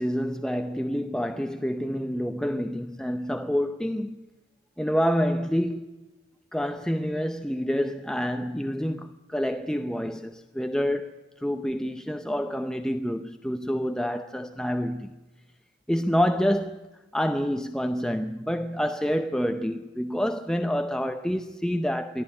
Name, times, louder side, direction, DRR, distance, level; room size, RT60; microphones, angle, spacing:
voice 1, 0.0-4.2 4.8-5.9 6.5-15.1 15.9-16.8 17.1-22.2, equal, 5° left, 0.6 m, -28 dB
24.0 x 14.5 x 9.9 m
head